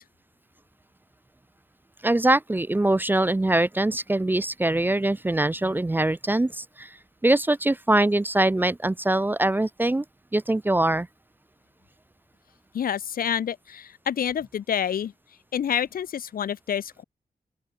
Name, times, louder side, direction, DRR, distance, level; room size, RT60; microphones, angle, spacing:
voice 1, 2.0-6.9 7.2-10.0 10.3-11.1, right 1 dB, 15° right, 0.4 m, -23 dB
voice 2, 12.7-15.1 15.5-17.0, left 9 dB, 80° left, 0.6 m, -28 dB
open air
wide cardioid pair, 125°, 15 cm